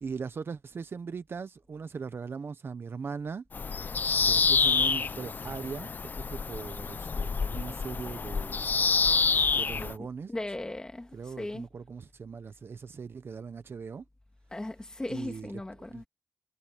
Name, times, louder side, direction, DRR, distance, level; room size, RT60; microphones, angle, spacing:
voice 1, 0.0-3.4 4.2-8.7 9.5-10.3 11.1-14.0 15.1-16.1, right 5 dB, 40° right, 0.7 m, -40 dB
Bird vocalization bird call bird song, 3.5-9.9, left 5 dB, 30° left, 0.4 m, -27 dB
voice 2, 9.8-11.7 14.5-16.0, left 1 dB, 15° left, 2.0 m, -38 dB
wide cardioid pair, 175°, 6 cm